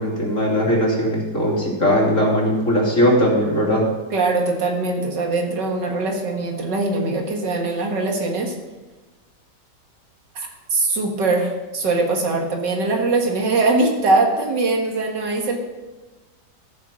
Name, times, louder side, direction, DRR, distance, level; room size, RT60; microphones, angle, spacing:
voice 1, 0.0-3.8, equal, 45° left, -3 dB, 3.2 m, -19 dB
voice 2, 4.1-8.5 10.4-15.6, right 3 dB, 85° right, 2 dB, 2.3 m, -21 dB
14.0 x 6.9 x 5.9 m, 1.2 s
omnidirectional pair, 1.9 m